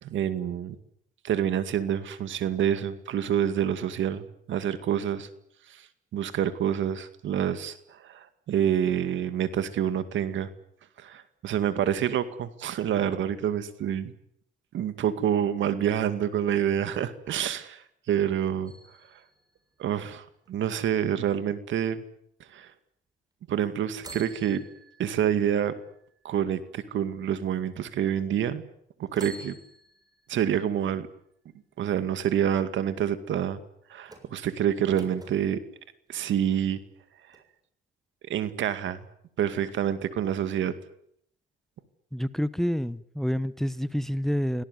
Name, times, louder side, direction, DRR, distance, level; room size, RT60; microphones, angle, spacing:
voice 1, 0.0-0.8 1.2-5.3 5.7-5.9 6.1-10.5 11.0-14.1 14.7-18.7 19.8-22.0 22.5-22.7 23.5-24.6 25.0-25.8 26.2-28.6 29.0-29.6 30.3-31.1 31.8-33.6 33.9-35.6 36.1-36.8 38.3-39.0 39.4-40.7, right 9 dB, 75° right, 11 dB, 2.3 m, -27 dB
sound 1, 18.7-20.5 24.0-27.1 27.7-27.8 29.1-30.9 34.0-35.4 36.1-37.0 37.3-37.4, right 2 dB, 20° right, 7.2 m, -50 dB
voice 2, 42.1-44.6, equal, ahead, 16 dB, 1.0 m, -28 dB
26.0 x 18.0 x 9.6 m, 0.71 s
cardioid pair, 90°, 20 cm